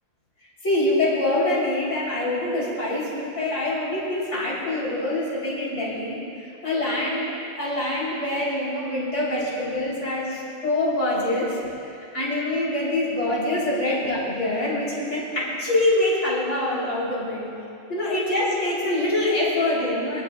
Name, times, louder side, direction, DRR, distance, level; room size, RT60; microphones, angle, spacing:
voice 1, 0.6-6.2 6.6-11.6 11.8-17.4 17.9-20.2, left 1 dB, 65° left, -7 dB, 3.7 m, -25 dB
23.0 x 12.0 x 2.3 m, 2.6 s
omnidirectional pair, 1.3 m